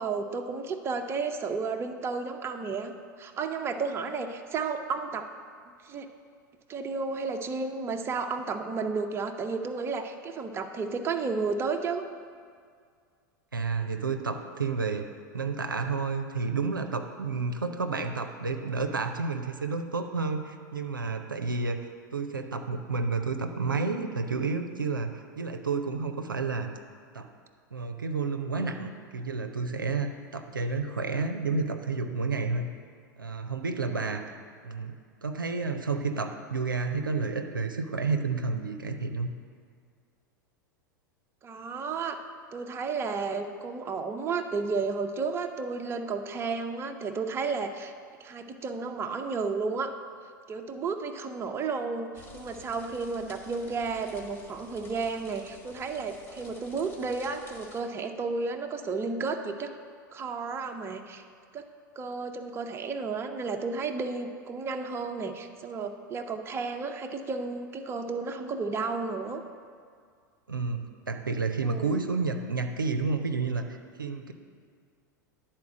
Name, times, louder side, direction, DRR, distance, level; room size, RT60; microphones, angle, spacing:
voice 1, 0.0-2.9 3.2-5.3 5.8-6.1 6.7-12.1 41.4-42.2 42.5-47.9 48.2-49.9 50.5-59.7 60.1-61.2 61.5-61.7 62.0-69.4 71.6-72.0, right 4 dB, 25° right, 5 dB, 0.6 m, -32 dB
voice 2, 13.5-15.1 15.3-21.9 22.1-26.7 27.1-27.3 27.7-32.7 33.2-34.4 34.6-34.9 35.2-39.3 70.5-74.3, right 4 dB, 85° right, 5 dB, 0.5 m, -30 dB
sound 1, 52.1-57.8, left 2 dB, 20° left, 1.5 m, -51 dB
10.5 x 4.4 x 6.1 m, 2.1 s
figure-of-eight pair, 85°, 11 cm